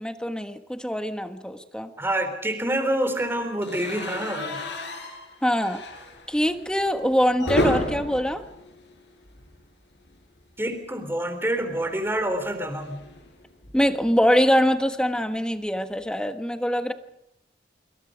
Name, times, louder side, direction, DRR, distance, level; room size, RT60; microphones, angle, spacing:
voice 1, 0.0-1.9 5.4-5.8 6.3-8.4 13.7-16.9, equal, 5° left, 8 dB, 1.3 m, -23 dB
voice 2, 2.0-4.6 7.4-7.8 10.6-13.0, right 1 dB, 15° right, 7 dB, 3.9 m, -27 dB
sound 1, 3.6-9.7 10.0-10.2 10.4-10.5 11.8-14.1, left 1 dB, 85° left, 7.6 m, -32 dB
26.5 x 24.5 x 5.2 m, 0.83 s
head